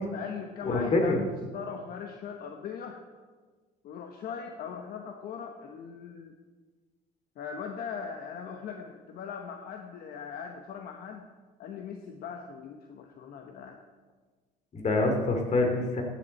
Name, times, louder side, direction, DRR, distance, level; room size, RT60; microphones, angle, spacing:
voice 1, 0.1-3.0 3.8-6.3 7.4-11.3 11.6-13.8, left 6 dB, 65° left, 4 dB, 1.1 m, -40 dB
voice 2, 0.6-1.2 14.7-16.0, left 2 dB, 40° left, 4 dB, 2.7 m, -25 dB
15.0 x 10.5 x 4.3 m, 1.4 s
cardioid pair, 110°, 17 cm